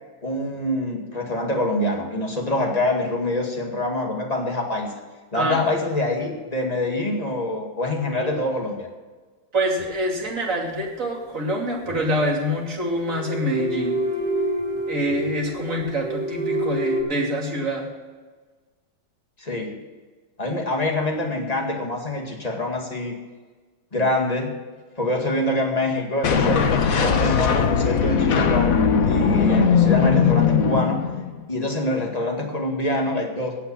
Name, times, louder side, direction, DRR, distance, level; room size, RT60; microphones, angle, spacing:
voice 1, 0.2-4.9 5.3-8.9 19.4-19.8 20.4-23.2 23.9-24.6 25.0-28.8 29.1-31.0 31.5-33.6, left 1 dB, 20° left, 1 dB, 2.1 m, -25 dB
voice 2, 8.1-8.4 9.5-14.0 14.9-17.9, equal, 45° right, -2 dB, 3.1 m, -26 dB
sound 1, 9.8-9.9 11.8-12.4 13.0-17.0, right 1 dB, 25° right, 2.8 m, -27 dB
sound 2, 26.2-31.4, left 6 dB, 55° left, 1.3 m, -19 dB
17.5 x 5.9 x 7.1 m, 1.4 s
omnidirectional pair, 2.0 m